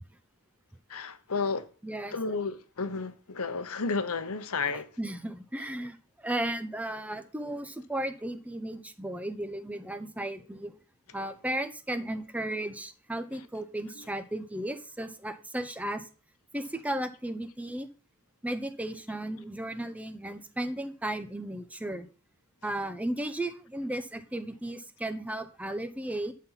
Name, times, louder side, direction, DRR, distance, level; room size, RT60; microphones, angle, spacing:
voice 1, 0.9-1.7 2.1-4.9 13.3-13.4 14.0-14.1, left 4 dB, 75° left, 0.9 m, -32 dB
voice 2, 1.8-2.3 4.7-10.7 11.1-16.1 16.5-17.9 18.4-22.1 22.6-26.3, right 1 dB, 5° right, 0.7 m, -35 dB
12.0 x 4.3 x 5.7 m
head